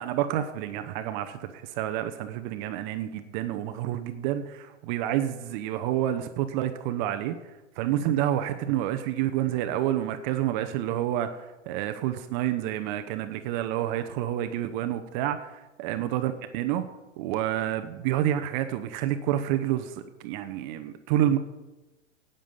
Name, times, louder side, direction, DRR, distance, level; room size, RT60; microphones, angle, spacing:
voice 1, 0.0-7.4 7.8-16.9 17.2-21.4, right 12 dB, 40° right, 8 dB, 0.8 m, -29 dB
12.0 x 8.9 x 5.5 m, 1.1 s
hypercardioid pair, 105°, 37 cm